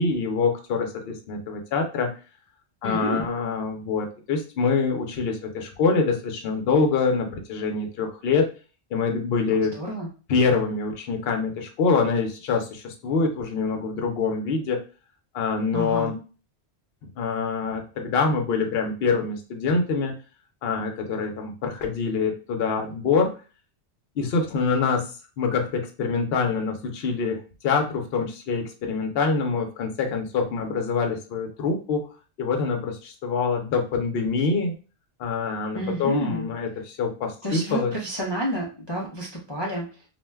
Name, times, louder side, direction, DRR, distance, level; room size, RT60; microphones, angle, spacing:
voice 1, 0.0-2.1 2.8-8.5 8.9-9.7 10.3-14.8 15.3-16.1 17.2-20.1 20.6-23.3 24.2-32.1 32.4-34.7 35.2-37.9, left 4 dB, 65° left, 3 dB, 0.8 m, -25 dB
voice 2, 2.8-3.3 9.7-10.1 15.7-16.1 35.7-36.5 37.4-40.0, right 1 dB, 35° left, -4 dB, 0.4 m, -29 dB
2.5 x 2.1 x 3.3 m, 0.35 s
omnidirectional pair, 1.2 m